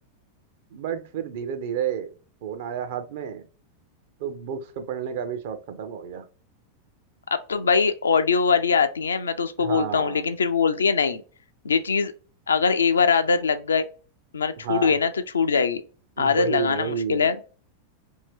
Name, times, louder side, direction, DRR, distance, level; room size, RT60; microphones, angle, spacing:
voice 1, 0.7-2.1 2.4-3.4 4.2-6.2 9.6-10.3 14.6-14.9 16.2-17.3, right 8 dB, 55° right, 0.5 m, -31 dB
voice 2, 7.3-11.2 11.6-12.1 12.5-13.9 14.3-15.8 16.2-17.4, left 5 dB, 70° left, 0.3 m, -22 dB
2.7 x 2.6 x 3.4 m
figure-of-eight pair, 90°, 0 cm